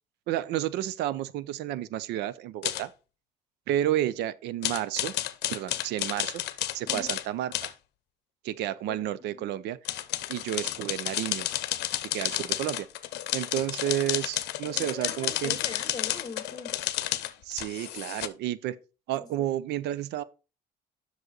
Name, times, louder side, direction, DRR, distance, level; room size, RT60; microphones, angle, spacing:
voice 1, 0.3-2.9 3.7-5.1 5.5-6.4 6.7-7.7 8.4-9.8 10.3-11.5 12.1-12.9 13.3-15.6 17.4-18.8 19.1-20.2, right 12 dB, 80° right, 0.6 m, -31 dB
sound 1, 2.6-2.8 4.6-7.2 7.5-7.7 9.8-18.3, left 14 dB, 80° left, 0.7 m, -31 dB
voice 2, 8.9-9.4 14.7-16.8 19.2-19.3, left 5 dB, 25° left, 1.8 m, -41 dB
7.9 x 6.3 x 3.9 m
cardioid pair, 110°, 17 cm